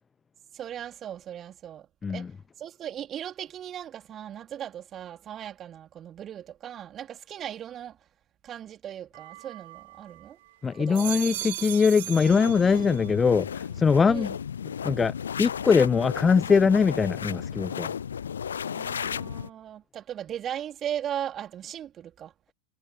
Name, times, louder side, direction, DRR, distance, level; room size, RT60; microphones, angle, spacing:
voice 1, 0.5-1.9 2.1-2.3 2.6-8.0 8.4-10.4 10.8-11.2 14.0-14.4 18.7-22.3, right 10 dB, 30° right, 4.0 m, -38 dB
sound 1, 9.1-10.3 10.7-13.2 13.5-14.1, right 18 dB, 50° right, 0.6 m, -38 dB
voice 2, 10.6-14.3 14.8-17.9, left 5 dB, 15° left, 0.3 m, -22 dB
sound 2, 12.2-19.5, left 7 dB, 70° left, 0.9 m, -34 dB
figure-of-eight pair, 90°, 0 cm